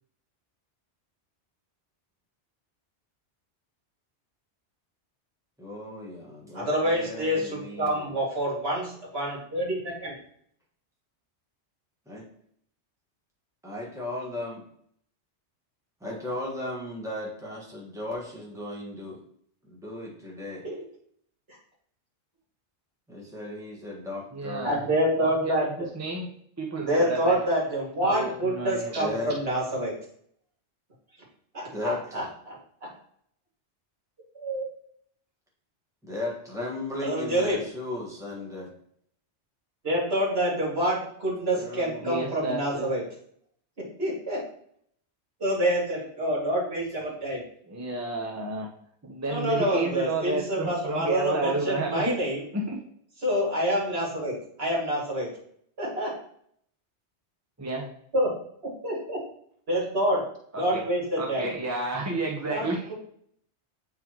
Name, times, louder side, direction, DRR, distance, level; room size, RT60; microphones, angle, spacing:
voice 1, 5.6-8.1 12.1-12.2 13.6-14.6 16.0-19.2 19.6-20.6 23.1-24.7 29.0-29.3 31.7-32.3 36.0-38.7 41.5-42.0, left 2 dB, 5° right, -4 dB, 1.5 m, -36 dB
voice 2, 6.5-10.1 20.6-20.8 21.5-21.6 24.6-25.9 26.8-29.9 31.5-32.9 34.3-34.7 37.0-37.6 39.8-43.0 43.8-44.5 45.4-47.4 49.3-52.4 53.2-55.3 55.8-56.1 58.1-58.3 58.8-59.2 59.7-60.2 60.6-61.5 62.5-62.9, equal, 60° right, -5 dB, 2.6 m, -27 dB
voice 3, 24.3-24.8 25.2-25.6 25.9-26.3 26.6-27.4 28.0-29.0 42.0-42.9 47.7-48.7 49.0-52.2 52.5-52.8 57.6-57.9 60.5-60.8 61.2-62.9, right 2 dB, 20° right, 0 dB, 0.6 m, -31 dB
8.4 x 3.8 x 3.0 m, 0.65 s
omnidirectional pair, 1.2 m